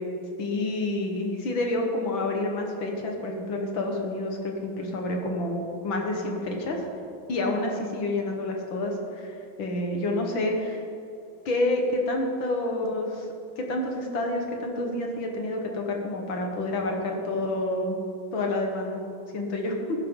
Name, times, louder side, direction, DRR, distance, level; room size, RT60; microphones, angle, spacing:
voice 1, 0.4-6.8 7.3-10.8 11.5-13.3 13.6-18.0 18.3-19.0 19.3-19.8, left 2 dB, 70° left, 1 dB, 2.4 m, -28 dB
19.0 x 9.9 x 4.0 m, 2.6 s
omnidirectional pair, 2.2 m